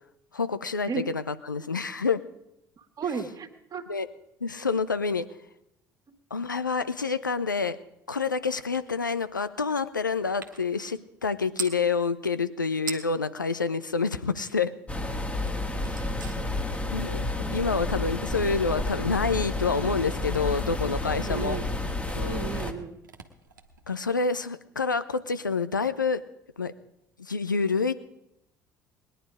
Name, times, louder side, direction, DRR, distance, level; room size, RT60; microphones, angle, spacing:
voice 1, 0.3-2.2 3.9-4.1 4.4-5.3 6.3-7.8 8.1-14.7 16.9-21.6 22.1-22.5 23.9-26.2 26.6-26.7 27.2-27.9, left 4 dB, 85° left, 13 dB, 0.6 m, -28 dB
voice 2, 2.8-3.9 21.2-21.7 22.2-23.0, right 6 dB, 40° right, 6 dB, 1.9 m, -34 dB
sound 1, 8.7-8.9 9.2-11.8 12.5-12.6 12.8-13.3 13.7-14.8 15.1-24.4, right 5 dB, 80° right, 1.2 m, -44 dB
sound 2, 14.9-22.7, left 2 dB, 15° left, 1.6 m, -30 dB
20.5 x 10.0 x 4.9 m, 0.82 s
figure-of-eight pair, 60°, 10 cm